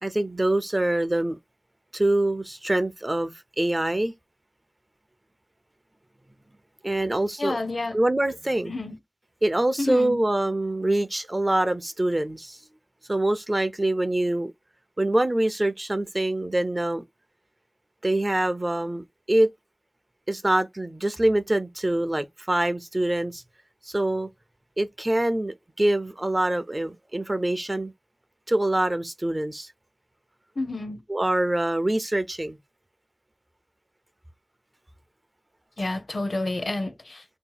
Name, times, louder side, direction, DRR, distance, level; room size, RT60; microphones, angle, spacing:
voice 1, 0.0-1.4 1.9-4.1 6.8-7.6 7.9-8.7 9.4-12.6 13.1-14.5 15.0-17.0 18.0-19.5 20.3-23.4 23.8-24.3 24.8-27.9 28.5-29.7 31.1-32.6, right 1 dB, 30° right, 0.4 m, -25 dB
voice 2, 7.4-8.0 8.7-9.0 9.8-10.2 30.6-31.0 35.8-37.2, left 2 dB, 60° left, 0.5 m, -29 dB
2.7 x 2.1 x 3.9 m
wide cardioid pair, 60°, 0 cm